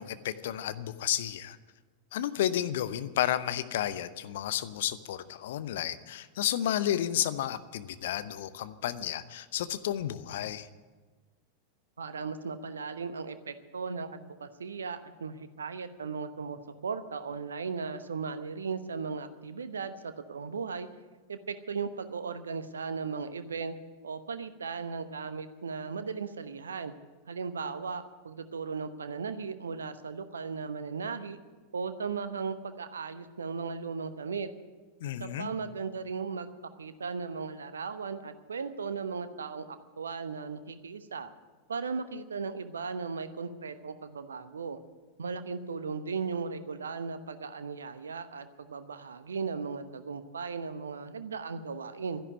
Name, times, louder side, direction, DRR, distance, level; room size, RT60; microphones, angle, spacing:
voice 1, 0.0-1.6 2.1-10.7 35.0-35.5, left 11 dB, 55° left, 13 dB, 0.8 m, -32 dB
voice 2, 12.0-20.9 21.3-23.7 24.0-26.9 27.3-31.4 31.7-34.5 35.0-36.5 36.8-39.7 40.0-41.3 41.7-44.8 45.2-52.2, right 5 dB, 70° right, 11 dB, 0.9 m, -37 dB
12.5 x 11.0 x 9.3 m, 1.3 s
figure-of-eight pair, 90°, 0 cm